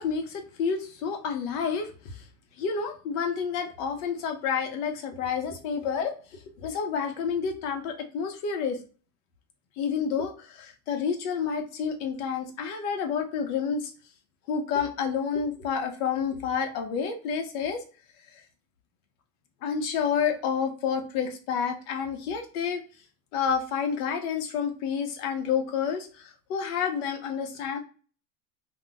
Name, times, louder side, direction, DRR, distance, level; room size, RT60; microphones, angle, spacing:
voice 1, 0.0-2.2 2.6-6.1 6.6-8.8 9.8-13.9 14.5-17.8 19.6-22.8 23.3-27.8, left 6 dB, 65° left, 5 dB, 0.9 m, -29 dB
2.3 x 2.3 x 3.9 m, 0.38 s
supercardioid pair, 140°, 48 cm